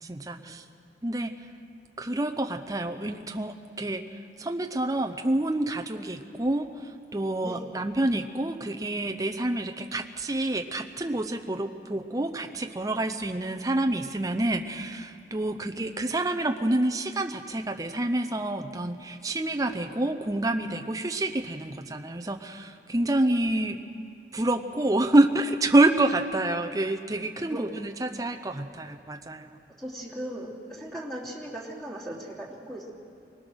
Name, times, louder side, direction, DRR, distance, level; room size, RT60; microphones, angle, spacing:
voice 1, 0.0-0.6 1.0-1.3 2.0-4.0 4.4-23.8 24.3-29.5, right 1 dB, 20° right, 5 dB, 0.7 m, -27 dB
voice 2, 29.8-32.9, right 1 dB, ahead, -4 dB, 2.8 m, -38 dB
24.0 x 19.5 x 6.4 m, 2.6 s
head